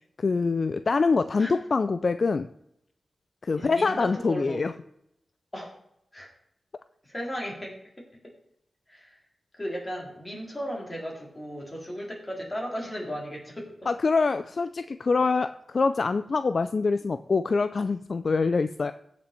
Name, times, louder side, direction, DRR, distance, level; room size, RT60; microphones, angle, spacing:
voice 1, 0.0-2.5 3.4-4.7 13.9-18.9, left 4 dB, 50° left, 12 dB, 0.4 m, -25 dB
voice 2, 3.6-4.6 5.5-5.7 6.1-6.3 7.0-8.1 8.9-9.2 9.6-13.9, equal, 20° left, -2 dB, 3.8 m, -36 dB
16.0 x 6.1 x 4.4 m, 0.77 s
wide cardioid pair, 100°, 0 cm